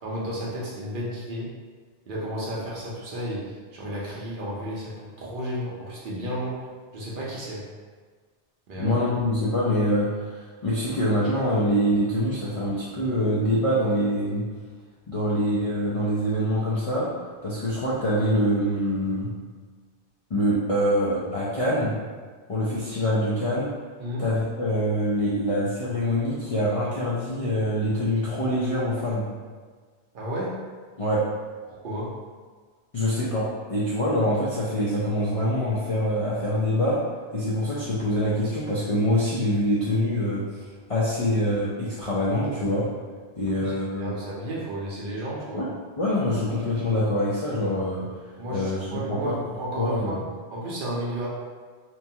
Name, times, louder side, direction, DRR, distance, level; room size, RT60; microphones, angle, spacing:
voice 1, 0.0-1.5 2.1-7.7 8.7-9.0 24.0-24.3 30.1-30.6 31.7-32.2 43.5-45.6 48.4-51.3, right 1 dB, 55° right, -5 dB, 0.7 m, -33 dB
voice 2, 8.8-14.4 15.1-17.1 17.4-19.3 20.3-21.9 22.5-23.7 24.2-29.2 31.0-31.2 32.9-37.0 37.3-40.6 40.9-42.9 43.4-44.2 45.5-45.7 46.0-48.0 48.5-49.4 49.7-50.2, equal, 60° left, -7 dB, 0.3 m, -25 dB
2.9 x 2.2 x 2.7 m, 1.5 s
omnidirectional pair, 1.2 m